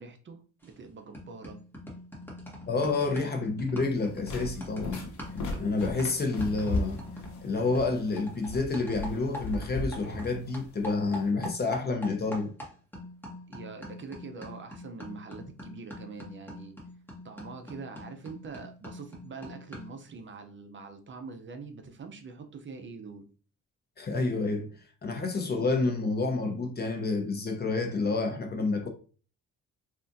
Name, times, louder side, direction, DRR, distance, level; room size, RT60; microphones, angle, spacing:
voice 1, 0.0-1.6 13.5-16.7 17.2-23.3, right 4 dB, 40° right, 0.6 m, -44 dB
sound 1, 0.6-0.9 1.1-10.3 10.5-20.0, left 1 dB, 5° left, 1.3 m, -44 dB
voice 2, 2.7-5.0 5.6-7.0 7.4-12.5 24.0-24.7 25.0-28.9, left 3 dB, 35° left, 0.7 m, -29 dB
sound 2, 3.9-11.3, left 1 dB, 70° left, 0.9 m, -37 dB
3.5 x 2.5 x 2.6 m
cardioid pair, 90°, 30 cm